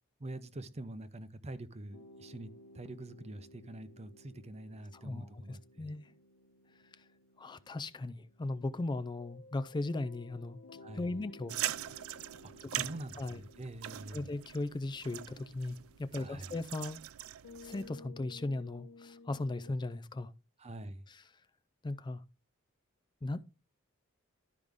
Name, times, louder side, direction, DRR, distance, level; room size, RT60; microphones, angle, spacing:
voice 1, 0.2-5.9 10.8-11.1 12.4-14.2 16.1-16.5 20.6-21.0, right 1 dB, 30° right, 0.7 m, -45 dB
sound 1, 1.9-19.7, left 2 dB, 85° left, 1.0 m, -57 dB
voice 2, 4.9-6.1 6.9-7.0 7.4-10.6 10.9-11.6 12.6-12.9 13.2-13.4 14.1-17.0 17.6-20.3 21.1-21.2 21.8-22.2 23.2-23.5, left 2 dB, 20° left, 0.4 m, -38 dB
sound 2, 11.5-17.9, right 13 dB, 75° right, 0.4 m, -42 dB
12.5 x 5.1 x 3.5 m
head